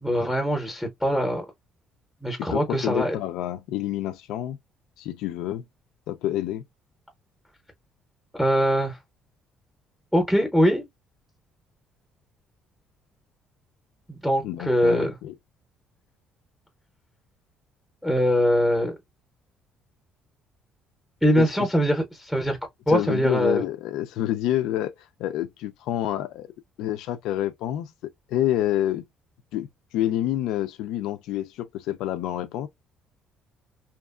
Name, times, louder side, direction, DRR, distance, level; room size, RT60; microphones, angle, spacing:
voice 1, 0.0-1.4 2.2-3.1 8.4-9.0 10.1-10.9 14.1-15.1 18.0-19.0 21.2-22.6 22.9-23.6, equal, ahead, 0.6 m, -22 dB
voice 2, 2.4-4.6 5.0-5.6 6.1-6.6 14.4-15.3 21.4-21.7 22.9-26.5 26.8-29.0 29.5-32.7, left 13 dB, 85° left, 0.3 m, -28 dB
2.8 x 2.4 x 2.3 m
cardioid pair, 180°, 0 cm